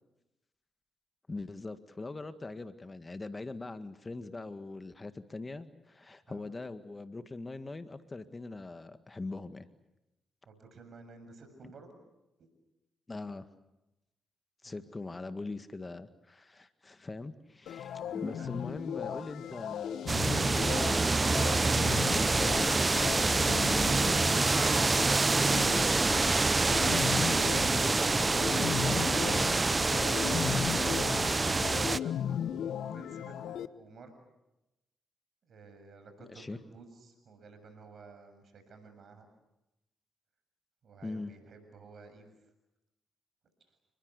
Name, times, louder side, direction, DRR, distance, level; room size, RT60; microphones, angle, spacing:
voice 1, 1.3-9.7 13.1-13.5 14.6-21.3 22.1-23.1 36.2-36.6 41.0-41.3, left 3 dB, 30° left, 10 dB, 1.8 m, -42 dB
voice 2, 10.5-12.0 12.4-12.5 14.6-14.9 17.9-18.6 28.3-34.1 35.4-39.3 40.8-42.3, right 3 dB, 60° right, 8 dB, 7.1 m, -53 dB
sound 1, 17.7-33.7, left 9 dB, 70° left, 1.0 m, -36 dB
sound 2, 20.1-32.0, right 3 dB, 30° right, 0.9 m, -26 dB
29.5 x 21.5 x 8.2 m, 0.95 s
hypercardioid pair, 45°, 0 cm